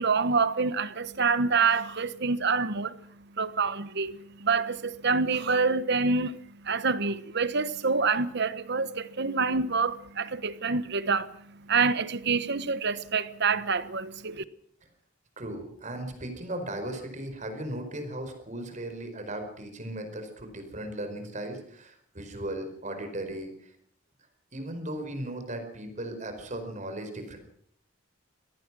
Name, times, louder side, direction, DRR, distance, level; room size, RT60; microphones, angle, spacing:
voice 1, 0.0-3.0 3.4-14.4, right 4 dB, 55° right, 1.2 m, -27 dB
voice 2, 15.4-23.5 24.5-27.4, right 1 dB, 35° right, 4.8 m, -37 dB
24.5 x 18.0 x 6.2 m
head